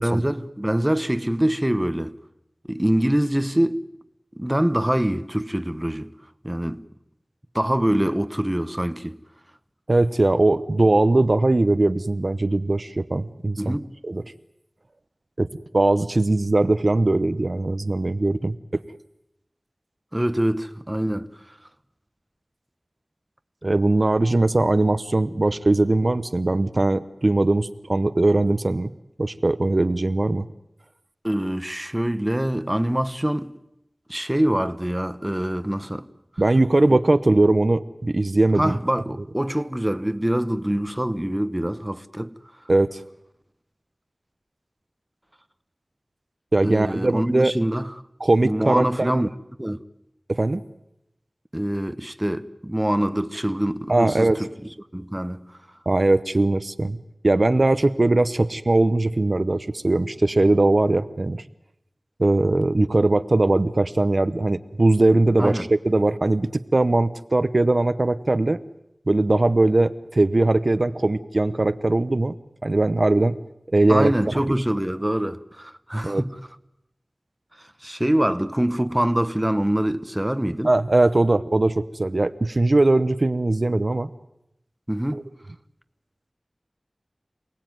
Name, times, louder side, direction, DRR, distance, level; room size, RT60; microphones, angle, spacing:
voice 1, 0.0-2.2 2.7-3.9 4.4-6.1 6.4-6.9 7.5-9.2 13.6-13.9 20.1-21.6 31.2-33.5 34.1-36.1 36.9-37.0 38.5-42.3 46.6-48.0 48.4-49.3 49.6-49.8 51.5-54.5 54.9-55.6 65.4-65.7 73.9-76.4 77.6-80.7 84.9-85.3, right 1 dB, 15° right, 1.0 m, -24 dB
voice 2, 9.9-13.8 14.0-14.2 15.4-15.5 15.7-18.8 23.6-28.9 29.2-30.5 36.4-38.7 42.7-43.0 46.5-47.5 48.2-49.3 50.3-50.6 53.9-54.5 55.9-57.0 57.2-61.4 62.2-68.6 69.1-72.4 72.6-73.4 73.7-74.1 74.5-74.6 76.0-76.2 80.6-84.1 85.1-85.2, right 2 dB, 60° right, 0.9 m, -20 dB
28.0 x 18.5 x 9.3 m
wide cardioid pair, 55°, 0 cm